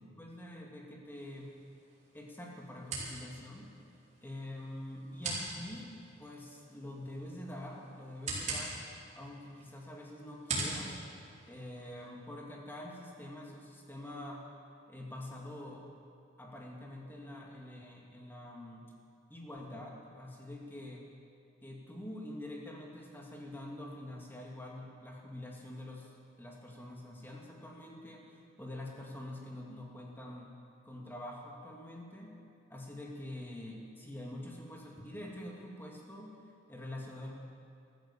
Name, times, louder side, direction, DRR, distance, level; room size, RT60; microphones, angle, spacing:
voice 1, 0.2-1.4 2.1-3.8 4.2-8.8 9.1-11.0 11.5-14.5 14.9-15.9 16.4-18.9 19.3-21.1 21.6-30.5 30.8-32.4 32.7-37.3, left 1 dB, 10° left, -2 dB, 2.3 m, -46 dB
sound 1, 1.1-12.1, right 3 dB, 40° right, 4.9 m, -43 dB
14.5 x 14.0 x 7.1 m, 2.4 s
head